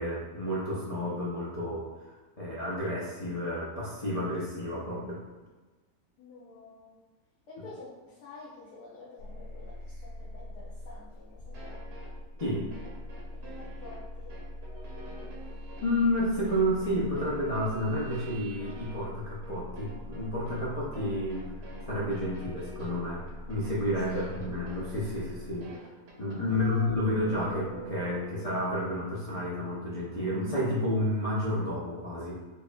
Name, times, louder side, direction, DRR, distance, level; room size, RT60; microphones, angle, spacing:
voice 1, 0.0-5.2 12.4-12.7 15.8-23.2 23.5-25.9 26.2-32.4, left 1 dB, 50° left, -8 dB, 0.4 m, -31 dB
voice 2, 6.2-7.0 7.5-11.8 13.4-14.4 24.1-24.4 26.5-27.0, left 3 dB, 80° left, -8 dB, 1.3 m, -47 dB
sound 1, 9.2-25.7 26.6-28.3, left 1 dB, 90° right, 1.2 m, -43 dB
sound 2, 11.5-26.4, right 2 dB, 50° right, 0.8 m, -49 dB
5.1 x 2.6 x 2.2 m, 1.3 s
omnidirectional pair, 1.7 m